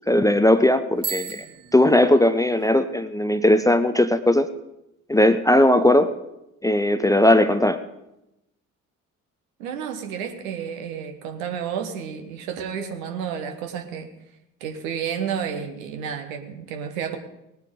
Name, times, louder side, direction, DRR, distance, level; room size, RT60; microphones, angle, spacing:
voice 1, 0.1-1.4 1.7-4.5 5.1-6.1 6.6-7.8, left 1 dB, 10° left, 12 dB, 0.6 m, -18 dB
Bicycle bell, 1.0-2.7, right 6 dB, 45° right, 3.6 m, -35 dB
voice 2, 9.6-14.1 14.6-17.2, right 7 dB, 70° right, 6 dB, 1.3 m, -31 dB
19.5 x 9.1 x 3.8 m, 0.90 s
figure-of-eight pair, 45°, 42 cm